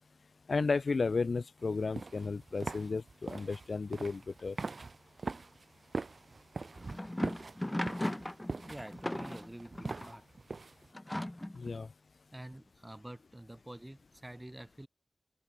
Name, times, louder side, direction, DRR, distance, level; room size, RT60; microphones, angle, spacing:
voice 1, 0.5-4.6 11.5-11.9, left 4 dB, 70° left, 1.5 m, -33 dB
sound 1, 1.7-10.9, right 3 dB, 65° right, 0.8 m, -42 dB
sound 2, 6.6-10.2 10.9-11.7, left 1 dB, 15° left, 1.2 m, -37 dB
voice 2, 8.6-10.2 12.3-14.9, right 1 dB, 15° right, 2.9 m, -48 dB
open air
wide cardioid pair, 90°, 0 cm